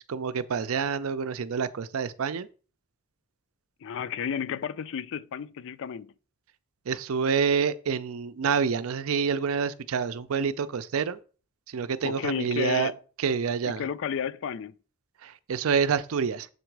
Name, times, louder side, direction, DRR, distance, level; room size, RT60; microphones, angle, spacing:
voice 1, 0.1-2.5 6.9-11.2 11.7-12.9 13.2-13.8 15.2-16.5, right 6 dB, 70° right, 0.5 m, -27 dB
voice 2, 3.8-6.1 12.0-13.0 13.7-14.8, left 7 dB, 65° left, 0.4 m, -32 dB
7.3 x 3.9 x 4.6 m
head